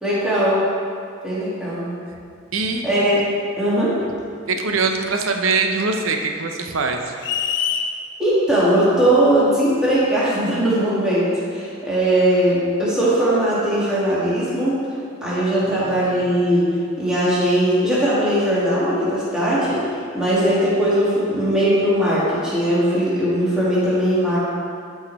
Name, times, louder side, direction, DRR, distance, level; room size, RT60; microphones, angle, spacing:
voice 1, 0.0-0.6 1.2-1.9 2.8-3.2 3.6-4.0 8.2-14.8 15.2-24.4, right 1 dB, 5° right, -10 dB, 2.2 m, -19 dB
voice 2, 2.5-2.8 4.5-7.1 15.6-16.0, right 4 dB, 90° right, 4 dB, 0.8 m, -23 dB
sound 1, 7.2-7.9, left 8 dB, 60° left, 0.6 m, -23 dB
12.0 x 4.9 x 4.3 m, 2.3 s
head